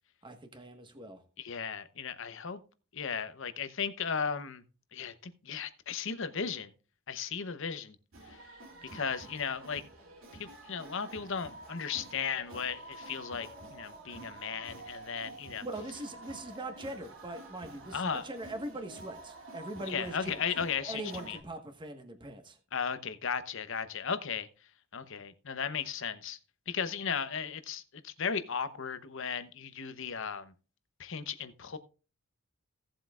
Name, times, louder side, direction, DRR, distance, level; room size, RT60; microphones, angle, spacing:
voice 1, 0.2-1.2 15.6-20.4 20.9-22.6, right 1 dB, 20° right, 1.4 m, -41 dB
voice 2, 1.4-2.6 2.9-4.6 4.9-6.7 7.1-8.0 8.9-9.8 10.4-15.6 17.9-18.2 19.9-21.4 22.7-24.5 24.9-26.4 26.7-30.5 31.0-31.8, left 6 dB, 65° left, 0.8 m, -36 dB
sound 1, 8.1-21.4, right 2 dB, 75° right, 2.7 m, -49 dB
17.0 x 7.7 x 2.4 m
head